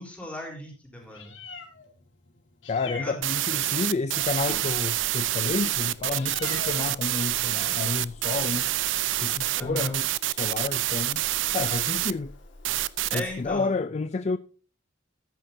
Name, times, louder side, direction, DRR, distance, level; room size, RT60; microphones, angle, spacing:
voice 1, 0.0-1.3 2.8-3.2 4.5-4.7 9.6-10.0 13.1-13.7, equal, 5° left, 3.9 m, -37 dB
Meow, 1.0-13.5, left 4 dB, 75° left, 1.8 m, -46 dB
voice 2, 2.7-8.7 9.2-11.2 11.5-12.3 13.1-14.4, left 4 dB, 35° left, 0.4 m, -30 dB
sound 1, 3.2-12.1 12.6-13.2, right 15 dB, 80° right, 0.5 m, -27 dB
14.0 x 10.0 x 2.7 m
head